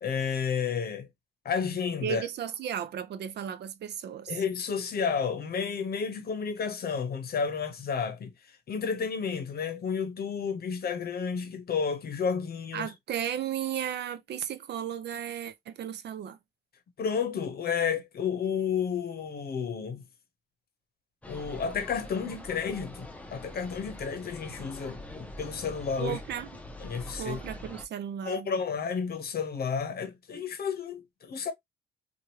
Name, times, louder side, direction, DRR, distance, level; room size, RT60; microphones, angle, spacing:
voice 1, 0.0-1.1 1.4-2.2 4.3-8.3 8.7-12.9 17.0-20.0 21.3-26.2 26.8-27.4 28.2-31.5, left 6 dB, 50° left, 0.8 m, -31 dB
voice 2, 2.0-4.4 12.7-16.4 26.0-26.5 27.2-28.6, right 9 dB, 60° right, 0.5 m, -35 dB
sound 1, 21.2-27.8, left 1 dB, 5° left, 0.6 m, -44 dB
3.0 x 2.4 x 2.8 m
cardioid pair, 90°, 20 cm